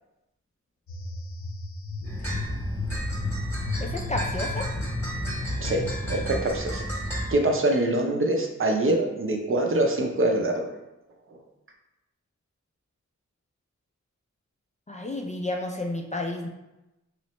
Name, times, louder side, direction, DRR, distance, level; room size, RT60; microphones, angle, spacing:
sound 1, 0.9-6.0, left 4 dB, 65° left, 0.7 m, -35 dB
sound 2, 2.0-7.3, equal, 5° left, 1.0 m, -32 dB
Tap, 2.0-7.3 9.9-10.0, equal, 85° right, 1.2 m, -44 dB
voice 1, 3.8-4.7 14.9-16.5, left 2 dB, 25° left, 1 dB, 0.3 m, -31 dB
voice 2, 6.1-6.9 7.3-10.7, right 1 dB, 45° right, 1 dB, 0.6 m, -24 dB
3.1 x 3.0 x 3.0 m, 0.96 s
wide cardioid pair, 80°, 30 cm